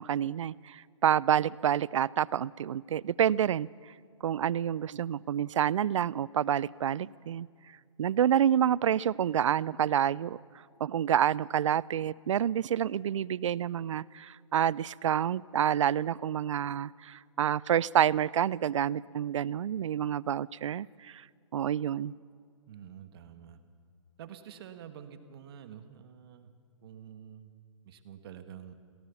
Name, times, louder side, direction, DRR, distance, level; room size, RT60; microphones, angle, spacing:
voice 1, 0.0-3.7 4.2-7.5 8.0-10.4 10.8-21.2 21.5-22.1, right 9 dB, 70° right, 24 dB, 0.4 m, -28 dB
voice 2, 22.7-23.6 24.2-26.5 26.8-27.5 27.8-28.7, right 9 dB, 50° right, 9 dB, 1.5 m, -48 dB
24.0 x 17.5 x 7.0 m, 2.2 s
hypercardioid pair, 140°, 17 cm